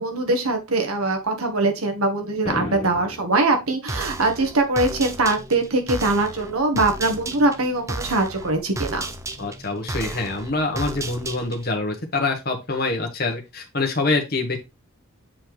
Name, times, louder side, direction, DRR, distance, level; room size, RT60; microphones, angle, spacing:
voice 1, 0.0-9.0, right 2 dB, 85° right, 4 dB, 1.5 m, -22 dB
sound 1, 2.5-3.5, left 2 dB, 30° left, 1.5 m, -32 dB
sound 2, 3.9-11.8, right 2 dB, 15° right, 0.5 m, -33 dB
voice 2, 9.4-14.6, left 3 dB, 45° left, 2 dB, 1.5 m, -25 dB
7.6 x 4.2 x 3.3 m, 0.24 s
head